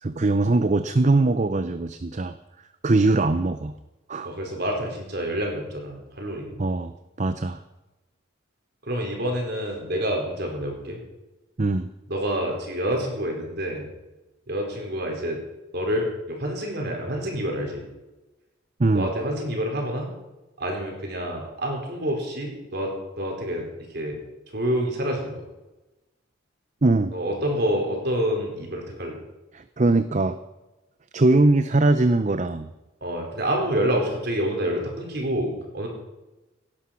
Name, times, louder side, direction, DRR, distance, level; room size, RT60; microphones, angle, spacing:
voice 1, 0.0-2.3 2.8-3.7 4.1-4.3 6.6-6.9 7.2-7.6 11.6-11.9 18.8-19.1 26.8-27.1 29.5-30.4 31.1-32.7, right 2 dB, 35° right, 11 dB, 0.6 m, -21 dB
voice 2, 4.2-6.6 8.8-11.0 12.1-13.9 14.5-15.4 15.7-17.8 18.9-20.1 20.6-24.2 24.5-25.4 27.1-29.2 33.0-35.9, equal, 50° right, 1 dB, 4.3 m, -28 dB
17.0 x 11.5 x 5.8 m, 1.0 s
head